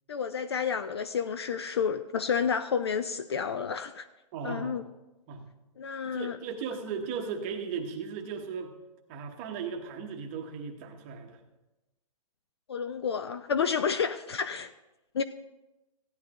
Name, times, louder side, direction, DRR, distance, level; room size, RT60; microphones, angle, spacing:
voice 1, 0.1-4.1 4.4-4.8 5.8-6.4 12.7-14.7 15.1-15.2, left 6 dB, 40° left, 12 dB, 0.4 m, -30 dB
voice 2, 4.3-4.8 5.3-5.4 6.0-8.7 9.1-11.4, right 6 dB, 20° right, 3 dB, 0.9 m, -36 dB
16.0 x 11.0 x 2.9 m, 1.0 s
hypercardioid pair, 170°, 21 cm